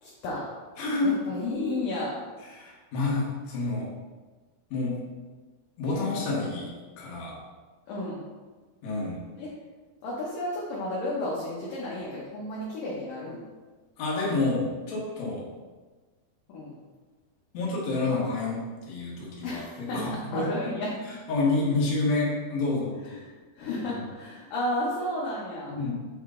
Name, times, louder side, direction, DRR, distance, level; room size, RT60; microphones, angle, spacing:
voice 1, 0.0-0.5 1.0-2.2 7.9-8.3 9.4-9.5 10.0-13.4 16.5-16.8 19.4-20.0 20.3-21.0 23.0-25.8, left 1 dB, 70° left, -6 dB, 2.2 m, -32 dB
voice 2, 0.8-1.3 2.5-3.9 4.7-5.0 5.8-6.7 7.0-7.4 8.8-9.2 14.0-15.4 17.5-20.5 21.3-23.2 23.9-24.0 25.7-26.0, left 3 dB, 50° left, -5 dB, 2.2 m, -28 dB
8.0 x 5.0 x 3.9 m, 1.3 s
omnidirectional pair, 5.4 m